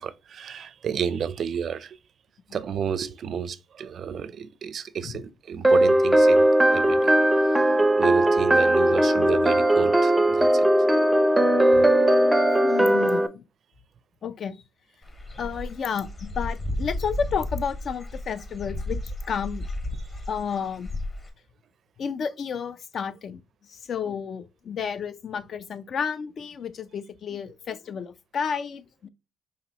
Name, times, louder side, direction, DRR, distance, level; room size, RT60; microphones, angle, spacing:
voice 1, 0.0-2.0 2.5-7.1 7.5-10.7, right 7 dB, 60° right, 0.4 m, -31 dB
sound 1, 5.6-13.3, right 1 dB, 5° right, 0.5 m, -19 dB
voice 2, 12.6-13.4 14.2-14.6 15.3-19.0 19.3-19.7 20.3-20.9 22.0-23.4 23.7-29.1, left 6 dB, 55° left, 0.4 m, -31 dB
Dog / Bird, 15.0-21.3, left 1 dB, 35° left, 1.4 m, -33 dB
4.9 x 3.0 x 2.8 m
cardioid pair, 90°, 0 cm